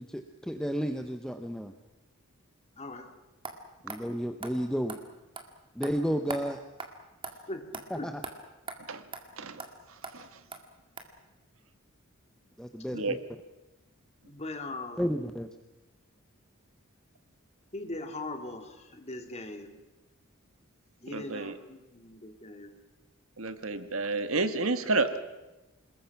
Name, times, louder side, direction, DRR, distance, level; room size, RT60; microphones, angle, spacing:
voice 1, 0.0-1.7 3.8-5.0 5.7-6.6 7.9-8.1 12.6-13.2 15.0-15.5, equal, 5° left, 6 dB, 0.8 m, -32 dB
voice 2, 2.8-3.1 7.5-7.6 8.0-8.1 12.9-13.1 14.2-15.0 17.7-19.8 21.0-22.7, left 2 dB, 30° left, 6 dB, 2.2 m, -40 dB
sound 1, 3.4-3.6 3.9-4.0 4.4-4.5 4.9-5.0 5.4-5.5 5.8-5.9 6.3-6.4 6.8-6.9 7.2-7.3 7.7-7.8 8.2-8.3 8.7-8.8 9.1-9.2 9.6-9.7 10.0-10.1 10.5-10.6 11.0-11.1, right 4 dB, 25° right, 2.1 m, -39 dB
voice 3, 21.1-21.5 23.4-25.2, right 3 dB, 75° right, 10 dB, 1.5 m, -30 dB
27.5 x 20.5 x 5.9 m, 1.0 s
head